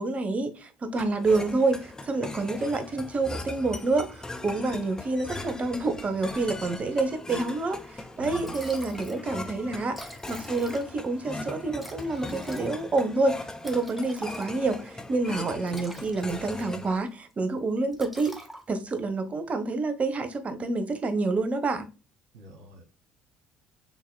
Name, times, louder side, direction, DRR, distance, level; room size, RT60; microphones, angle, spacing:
voice 1, 0.0-18.4 18.7-21.9, right 3 dB, 35° right, 1.0 m, -28 dB
sound 1, 1.0-17.0, left 2 dB, 15° left, 0.8 m, -40 dB
voice 2, 8.2-8.5 22.3-22.8, right 3 dB, 75° right, 1.8 m, -45 dB
Liquid, 8.4-9.3 9.6-9.7 9.8-11.1 11.8-14.8 15.5-17.0 17.3-17.6 17.9-19.0, equal, 5° right, 1.2 m, -45 dB
6.0 x 3.7 x 2.2 m
hypercardioid pair, 55°, 4 cm